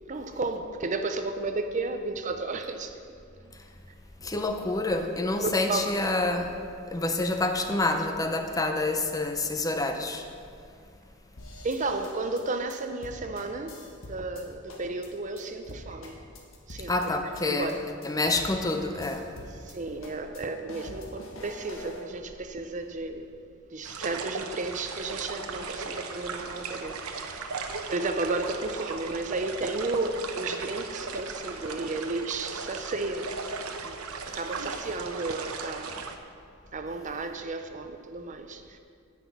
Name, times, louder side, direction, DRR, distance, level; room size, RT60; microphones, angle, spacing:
voice 1, 0.0-3.0 5.4-5.8 11.6-13.8 14.1-16.2 16.7-16.9 17.2-17.7 19.6-23.3 23.7-27.5 27.9-33.4 33.8-34.0 34.2-36.1 36.7-38.8, right 3 dB, 35° right, 7 dB, 0.6 m, -33 dB
voice 2, 4.2-6.6 6.9-10.3 16.9-17.8 18.0-19.3, left 2 dB, 15° left, 6 dB, 0.6 m, -28 dB
sound 1, 11.4-14.4 14.7-15.1 15.4-15.5 15.7-17.1 17.3-17.7 18.0-18.1 18.3-19.7 20.0-22.0, left 1 dB, 65° left, 1.7 m, -45 dB
sound 2, 23.8-36.2, right 4 dB, 85° right, 0.9 m, -37 dB
9.9 x 5.9 x 8.4 m, 2.3 s
head